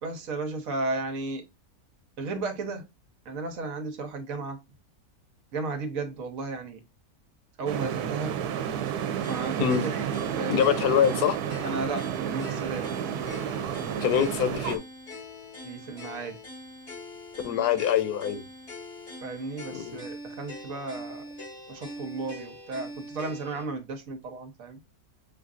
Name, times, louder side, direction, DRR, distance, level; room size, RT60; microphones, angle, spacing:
voice 1, 0.0-1.4 2.2-2.8 3.3-4.6 5.5-6.8 7.6-8.4 9.2-10.1 10.4-10.6 11.6-12.9 15.6-16.4 19.2-21.3 21.7-24.8, right 3 dB, 65° right, 1.2 m, -34 dB
sound 1, 7.7-14.8, right 9 dB, 90° right, 1.1 m, -31 dB
sound 2, 9.2-23.7, left 1 dB, 45° left, 3.3 m, -43 dB
voice 2, 10.5-11.4 14.0-14.8 17.4-18.4 19.7-20.0, left 9 dB, 85° left, 1.2 m, -24 dB
6.5 x 2.6 x 2.3 m
omnidirectional pair, 1.6 m